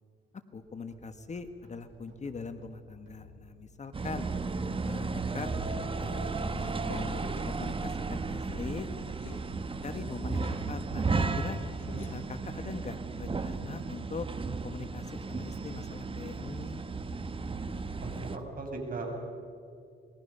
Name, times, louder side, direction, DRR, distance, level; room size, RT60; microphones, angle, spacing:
voice 1, 0.5-4.3 4.8-5.5 6.0-8.9 9.8-11.6 12.1-14.3 14.6-16.8, left 5 dB, 35° left, 9 dB, 1.5 m, -41 dB
sound 1, 0.5-17.7, right 3 dB, 75° right, 6.2 m, -56 dB
sound 2, 3.9-18.4, right 4 dB, 25° right, 1.4 m, -34 dB
sound 3, 6.5-9.5 9.8-12.2, left 5 dB, 75° left, 7.7 m, -48 dB
voice 2, 18.0-19.3, right 2 dB, 45° right, 2 dB, 6.6 m, -37 dB
28.5 x 21.5 x 5.6 m, 2.5 s
cardioid pair, 90°, 20 cm